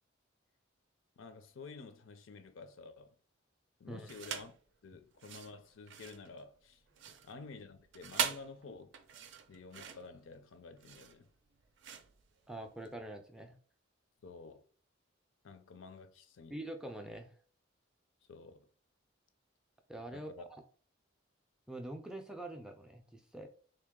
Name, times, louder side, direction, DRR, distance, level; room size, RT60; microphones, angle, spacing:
voice 1, 1.2-3.1 3.8-4.5 4.8-6.8 7.2-8.9 9.5-11.3 14.2-14.6 15.4-16.5 18.3-18.7 20.1-20.4, left 4 dB, 80° left, 0.5 m, -51 dB
sound 1, 4.1-4.6 5.1-12.9, right 8 dB, 65° right, 0.4 m, -42 dB
voice 2, 12.5-13.6 16.5-17.3 19.9-20.6 21.7-23.5, right 1 dB, 5° right, 0.3 m, -45 dB
3.4 x 2.8 x 3.6 m
head